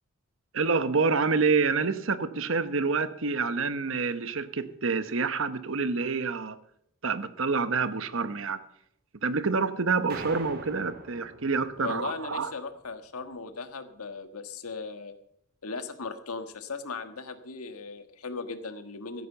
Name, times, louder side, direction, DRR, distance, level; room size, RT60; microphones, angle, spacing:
voice 1, 0.5-6.6 7.0-8.6 9.2-12.5, right 4 dB, 60° right, 13 dB, 0.9 m, -27 dB
sound 1, 10.1-12.5, right 2 dB, 45° right, 2.0 m, -43 dB
voice 2, 11.8-15.1 15.6-19.3, left 4 dB, 80° left, 9 dB, 1.4 m, -37 dB
15.5 x 9.4 x 6.7 m, 0.73 s
head